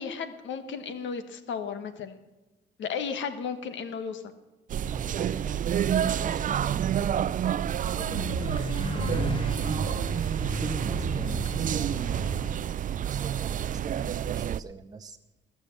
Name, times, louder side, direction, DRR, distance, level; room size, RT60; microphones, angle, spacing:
voice 1, 0.0-2.2 2.8-4.2, left 6 dB, 70° left, 10 dB, 1.4 m, -34 dB
sound 1, 4.7-14.6, right 9 dB, 40° right, 0.4 m, -29 dB
voice 2, 4.9-7.2 7.9-9.9 10.4-15.2, right 4 dB, 20° right, 6 dB, 0.8 m, -41 dB
sound 2, 8.0-12.6, left 2 dB, 25° left, 1.6 m, -35 dB
19.5 x 7.0 x 7.2 m, 1.1 s
cardioid pair, 90°, 20 cm